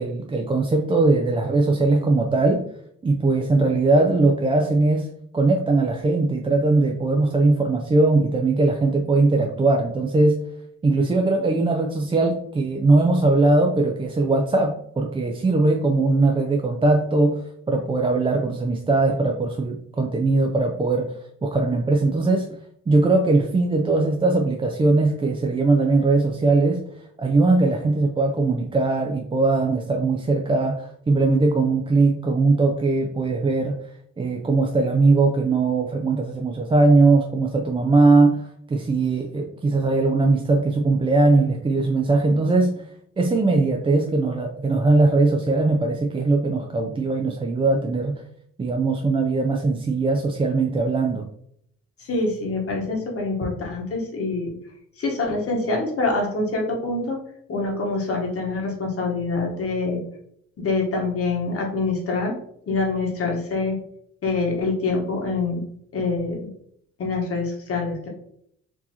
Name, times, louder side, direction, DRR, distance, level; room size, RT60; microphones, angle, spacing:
voice 1, 0.0-2.7 3.0-5.1 5.3-10.4 10.8-21.1 21.4-22.6 22.9-26.8 27.2-33.8 34.2-42.8 43.2-48.2 48.6-51.3, right 3 dB, 20° right, 2 dB, 0.4 m, -20 dB
voice 2, 52.1-54.5 55.0-57.2 57.5-60.0 60.6-62.3 62.7-63.8 64.2-65.6 65.9-66.5 67.0-68.1, left 3 dB, 50° left, 0 dB, 1.1 m, -25 dB
4.5 x 2.8 x 2.8 m, 0.69 s
cardioid pair, 90°, 30 cm